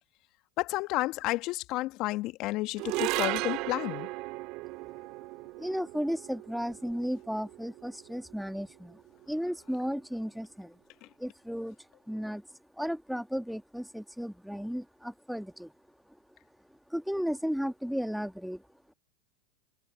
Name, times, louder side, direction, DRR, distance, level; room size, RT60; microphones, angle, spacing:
voice 1, 0.6-4.1, left 19 dB, 50° left, 1.7 m, -31 dB
sound 1, 2.8-9.3, right 23 dB, 55° right, 1.9 m, -36 dB
voice 2, 5.6-10.8 11.2-15.7 16.1-16.2 16.9-18.9, equal, ahead, 1.5 m, -35 dB
hypercardioid pair, 95°, 0 cm